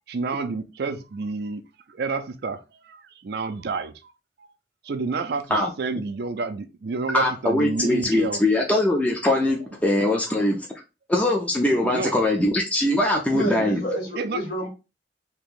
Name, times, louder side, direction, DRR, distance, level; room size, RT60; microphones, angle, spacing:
voice 1, 0.1-1.6 1.9-3.9 4.4-4.5 4.8-8.5 11.9-12.1 14.1-14.4, right 4 dB, 60° right, 0.4 m, -29 dB
voice 2, 7.1-10.7 11.1-13.8, left 1 dB, 10° left, 0.4 m, -22 dB
voice 3, 13.3-14.7, right 1 dB, 55° left, 1.3 m, -30 dB
2.9 x 2.5 x 3.6 m
head